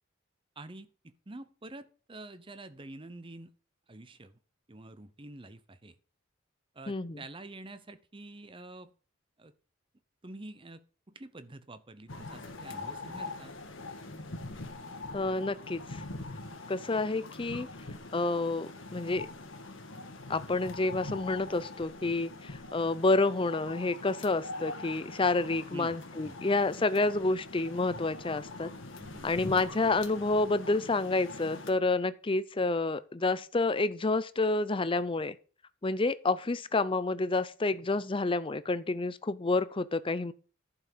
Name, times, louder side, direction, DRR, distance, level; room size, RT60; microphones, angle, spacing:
voice 1, 0.6-3.5 3.9-4.4 4.7-6.0 6.7-8.9 9.4-9.5 10.2-10.8 11.1-13.6 25.7-26.0 26.2-26.4 29.0-29.7, right 2 dB, 25° right, 0.8 m, -47 dB
voice 2, 6.9-7.2 15.1-16.0 16.7-17.7 18.1-19.3 20.3-28.7 29.2-35.4 35.8-40.3, left 3 dB, 25° left, 0.5 m, -29 dB
sound 1, 12.1-31.7, left 2 dB, 75° left, 1.7 m, -43 dB
11.0 x 5.9 x 6.8 m
head